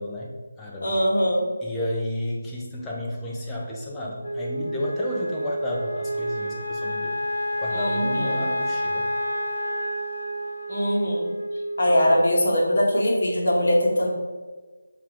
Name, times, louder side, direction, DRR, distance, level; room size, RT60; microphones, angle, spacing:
voice 1, 0.0-0.9 1.6-7.2 7.6-9.1, left 1 dB, 10° left, -4 dB, 0.6 m, -31 dB
voice 2, 0.8-1.4 7.7-8.4 10.7-11.3 11.8-14.1, equal, 50° left, -2 dB, 1.0 m, -22 dB
Wind instrument woodwind instrument, 4.2-12.7, equal, 80° left, 0.6 m, -29 dB
6.7 x 2.4 x 3.1 m, 1.4 s
figure-of-eight pair, 155°, 0 cm